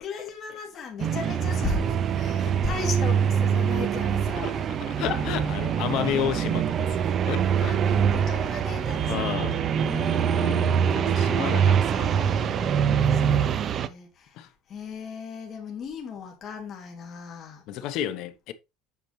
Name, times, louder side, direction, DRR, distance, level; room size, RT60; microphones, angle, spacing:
voice 1, 0.0-4.7 5.9-6.3 6.9-7.2 7.5-10.7 12.0-14.4 14.7-17.6, left 5 dB, 30° left, 2.1 m, -37 dB
sound 1, 1.0-13.9, right 8 dB, 35° right, 0.5 m, -24 dB
voice 2, 4.8-7.7 9.1-9.6 10.4-13.4 14.4-14.5 17.7-18.5, left 11 dB, 55° left, 1.0 m, -32 dB
8.2 x 6.0 x 3.2 m
cardioid pair, 160°, 0 cm